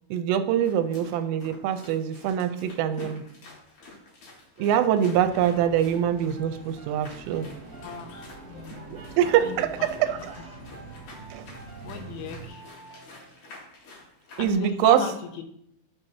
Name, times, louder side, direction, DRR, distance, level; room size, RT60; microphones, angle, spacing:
voice 1, 0.1-3.2 4.6-7.5 8.7-10.2 11.3-11.5 14.4-15.0, right 10 dB, 85° right, 8 dB, 3.1 m, -24 dB
sound 1, 0.6-14.6, left 2 dB, 55° left, 3.4 m, -49 dB
sound 2, 4.6-13.5, right 2 dB, 25° left, 2.1 m, -51 dB
sound 3, 5.1-12.5, right 3 dB, 45° right, 3.7 m, -45 dB
voice 2, 7.8-9.9 10.6-10.7 11.8-12.6 14.4-15.4, left 6 dB, 90° left, 6 dB, 3.2 m, -37 dB
12.0 x 5.7 x 2.7 m, 0.73 s
omnidirectional pair, 5.7 m